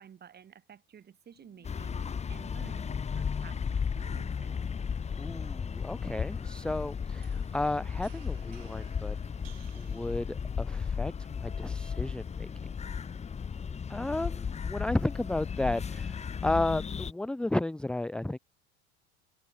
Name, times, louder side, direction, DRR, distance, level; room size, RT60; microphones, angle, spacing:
voice 1, 0.0-4.6, right 8 dB, 35° right, 3.2 m, -53 dB
sound 1, 1.3-7.6, left 17 dB, 55° left, 6.5 m, -62 dB
sound 2, 1.6-17.1, left 6 dB, 20° left, 1.1 m, -35 dB
sound 3, 3.2-10.2, right 16 dB, 80° right, 5.3 m, -62 dB
voice 2, 5.2-9.4 9.7-12.5 13.9-18.4, left 2 dB, 5° left, 0.6 m, -33 dB
hypercardioid pair, 85°, 30 cm